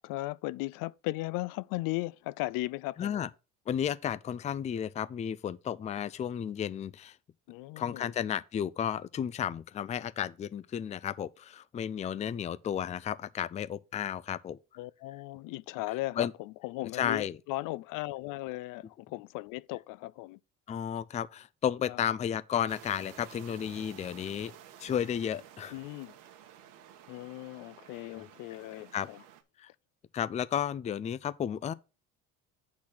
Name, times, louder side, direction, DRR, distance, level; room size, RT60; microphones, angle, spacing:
voice 1, 0.0-3.3 7.5-8.1 14.8-20.4 21.8-22.0 25.7-26.1 27.1-29.2, left 19 dB, 75° left, 0.5 m, -37 dB
voice 2, 3.0-3.3 3.7-7.2 7.8-14.6 16.2-16.3 17.0-17.4 20.7-24.5 24.8-25.7 28.2-28.3 28.9-29.1 29.6-29.7 30.1-31.7, left 9 dB, 20° left, 0.4 m, -33 dB
sound 1, 22.7-29.4, right 10 dB, 75° right, 1.4 m, -53 dB
8.6 x 4.1 x 5.8 m
cardioid pair, 130°, 32 cm